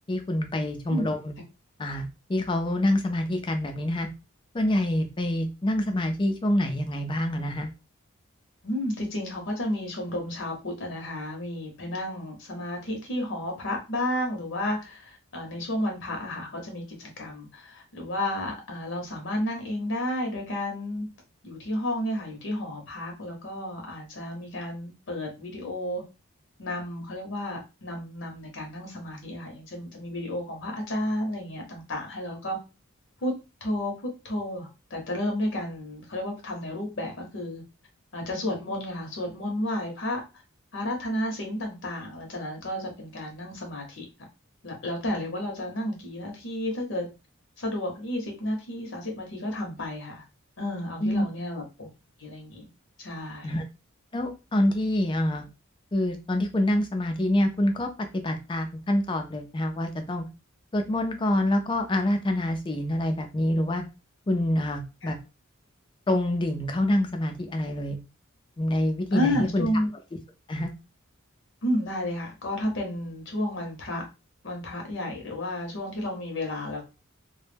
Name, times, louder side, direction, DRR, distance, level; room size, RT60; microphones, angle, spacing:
voice 1, 0.1-1.3 1.8-4.1 4.5-7.7 51.0-51.3 53.4-53.6 54.1-55.5 55.9-60.2 60.7-63.8 64.3-65.2 66.1-68.0 68.6-69.7 70.5-70.7, left 1 dB, 25° left, 5 dB, 0.4 m, -26 dB
voice 2, 8.6-21.1 21.4-26.0 26.6-32.6 33.2-33.3 33.6-37.6 38.1-40.2 40.7-44.0 44.6-47.1 47.6-50.2 50.6-51.9 52.2-52.7 53.0-53.6 65.0-65.1 69.1-69.9 71.6-74.0 74.4-76.8, left 1 dB, 60° left, 2 dB, 0.7 m, -32 dB
2.1 x 2.0 x 3.2 m, 0.28 s
head